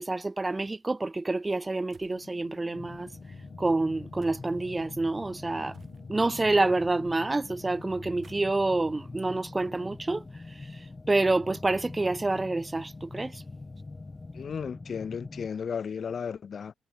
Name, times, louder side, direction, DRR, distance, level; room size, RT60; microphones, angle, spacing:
voice 1, 0.0-3.1 3.6-5.8 6.1-10.2 11.1-13.4, right 2 dB, 20° right, 0.3 m, -28 dB
sound 1, 1.9-2.3 4.2-4.7 5.7-6.4 8.0-10.0, right 6 dB, 40° right, 3.1 m, -59 dB
sound 2, 2.0-9.4, left 13 dB, 80° left, 4.0 m, -55 dB
sound 3, 2.7-15.5, left 3 dB, 20° left, 1.6 m, -44 dB
voice 2, 14.3-16.7, left 6 dB, 45° left, 0.8 m, -34 dB
cardioid pair, 90°, 0 cm